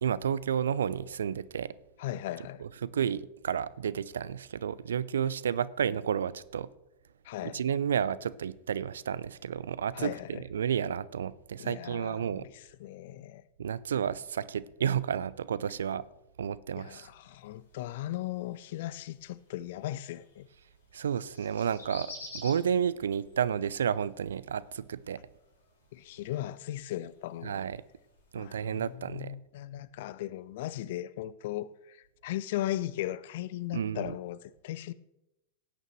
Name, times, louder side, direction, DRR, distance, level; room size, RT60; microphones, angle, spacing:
voice 1, 0.0-1.7 2.6-6.7 7.4-12.5 13.6-16.0 16.4-17.1 20.9-25.2 27.4-27.8 28.3-29.4 33.7-34.1, right 8 dB, 65° right, 0.4 m, -31 dB
voice 2, 2.0-2.6 7.2-7.6 9.9-10.4 11.6-12.5 12.8-13.4 16.8-20.5 25.9-27.6 28.4-34.9, left 14 dB, 55° left, 0.4 m, -37 dB
sound 1, 17.4-28.9, left 2 dB, 75° left, 4.8 m, -53 dB
17.5 x 9.0 x 3.1 m
figure-of-eight pair, 90°, 0 cm